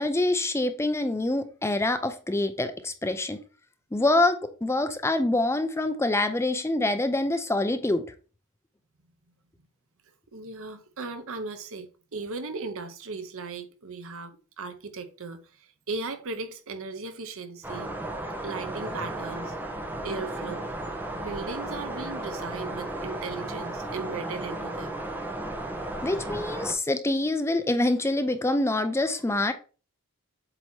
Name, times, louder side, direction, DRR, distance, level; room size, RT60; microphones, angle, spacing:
voice 1, 0.0-3.4 3.9-8.0 26.0-29.5, left 2 dB, 10° left, 0.5 m, -25 dB
voice 2, 10.3-17.9 18.4-19.5 20.0-20.7 21.2-25.0, right 3 dB, 65° right, 0.9 m, -37 dB
sound 1, 17.6-26.7, right 1 dB, 10° right, 0.9 m, -34 dB
7.8 x 3.0 x 4.4 m
head